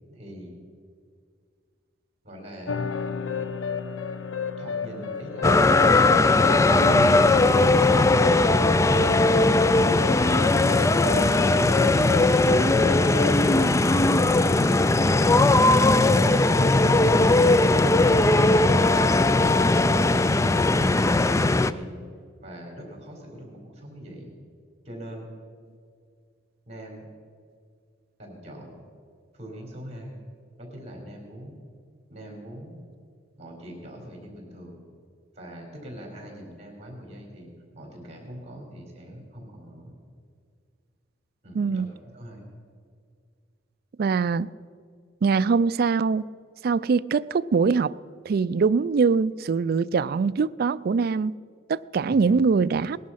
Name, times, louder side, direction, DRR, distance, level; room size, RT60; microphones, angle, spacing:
voice 1, 0.1-0.6 2.2-2.8 4.6-5.7 10.0-10.6 21.3-22.0 22.4-24.3 24.8-25.3 26.7-27.1 28.2-28.8 29.3-30.2 30.6-31.6 32.1-32.8 33.4-34.8 35.3-39.9 41.4-42.4 52.1-52.4, equal, 35° right, 4.1 m, -42 dB
sound 1, 2.7-13.7, left 6 dB, 85° left, 0.7 m, -32 dB
sound 2, 5.4-21.7, left 2 dB, 15° left, 0.4 m, -19 dB
voice 2, 41.6-41.9 44.0-44.5 45.2-46.3 46.6-47.9 48.3-51.3 51.7-53.0, right 5 dB, 50° right, 0.4 m, -23 dB
19.5 x 11.5 x 5.6 m
head